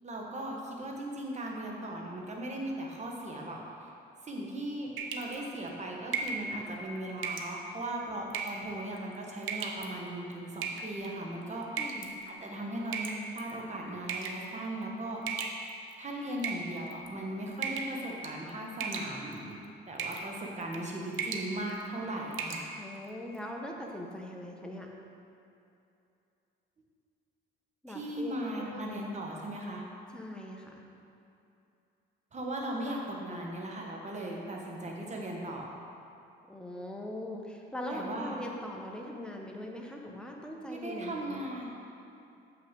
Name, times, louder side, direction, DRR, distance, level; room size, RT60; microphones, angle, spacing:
voice 1, 0.0-3.9 4.2-15.2 16.0-19.5 19.8-22.6 27.9-29.9 32.3-35.7 37.9-38.4 40.7-41.7, right 1 dB, 35° right, -1 dB, 1.5 m, -38 dB
sound 1, 5.0-5.4 6.1-6.4 7.2-7.5 8.3-8.7 9.4-9.9 10.6-11.1 11.8-12.1 12.9-13.5 14.1-14.4 15.3-15.9 16.4-17.1 17.6-18.0 18.2-18.5 18.8-19.4 20.0-20.3 20.6-20.8 21.1-21.5 21.8-21.9 22.3-22.7, right 6 dB, 80° right, 0.8 m, -35 dB
voice 2, 11.8-12.2 22.8-24.9 27.8-29.0 30.1-30.8 36.5-41.5, left 1 dB, 5° left, 0 dB, 1.1 m, -41 dB
7.5 x 5.9 x 5.3 m, 2.7 s
cardioid pair, 90°, 20 cm